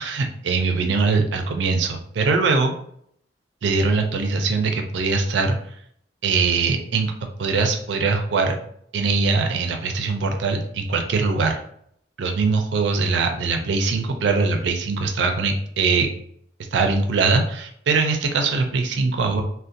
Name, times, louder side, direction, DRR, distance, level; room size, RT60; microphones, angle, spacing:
voice 1, 0.0-2.7 3.6-5.6 6.2-7.1 7.4-8.6 8.9-11.6 12.2-16.1 16.7-19.4, right 4 dB, 80° right, 4 dB, 0.4 m, -22 dB
2.5 x 2.1 x 2.5 m, 0.67 s
head